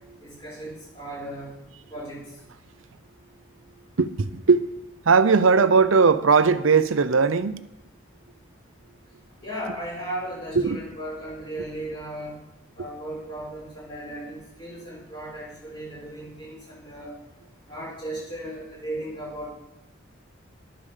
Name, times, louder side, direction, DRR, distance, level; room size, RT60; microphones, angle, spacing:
voice 1, 0.2-1.6 1.9-2.3 9.4-12.4 12.8-17.2 17.7-19.5, right 1 dB, 25° left, 5.6 m, -36 dB
voice 2, 4.0-4.6 5.0-7.6 10.6-10.8, right 5 dB, 90° right, 0.7 m, -19 dB
11.5 x 8.9 x 6.7 m
head